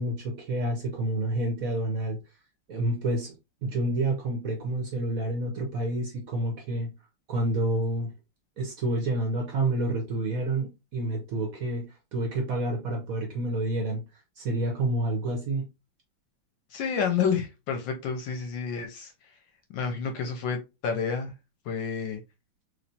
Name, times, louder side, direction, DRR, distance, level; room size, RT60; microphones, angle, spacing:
voice 1, 0.0-2.2 2.7-3.3 3.6-6.9 7.3-8.1 8.6-11.8 12.1-15.7, right 1 dB, 65° right, 0.8 m, -29 dB
voice 2, 16.7-19.4 19.7-21.3 21.6-22.2, left 6 dB, 75° left, 1.2 m, -30 dB
3.1 x 3.0 x 2.7 m
omnidirectional pair, 2.3 m